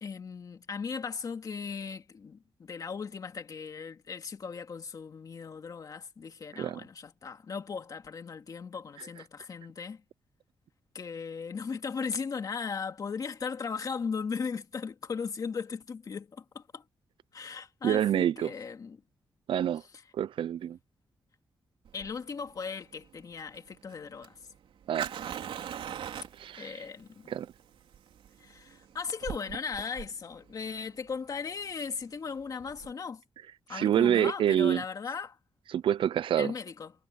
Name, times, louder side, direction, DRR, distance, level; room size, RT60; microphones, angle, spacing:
voice 1, 0.0-10.0 10.9-16.8 17.3-19.0 21.9-24.4 26.6-27.4 28.4-33.2 33.7-35.4 36.4-36.9, left 5 dB, 40° left, 2.3 m, -37 dB
voice 2, 6.5-6.8 17.8-18.5 19.5-19.8 20.1-20.8 24.9-25.1 26.4-26.8 27.3-27.5 33.7-34.8 35.7-36.5, right 10 dB, 70° right, 0.4 m, -27 dB
Fire, 21.9-32.9, right 9 dB, 85° right, 3.7 m, -42 dB
wide cardioid pair, 155°, 9 cm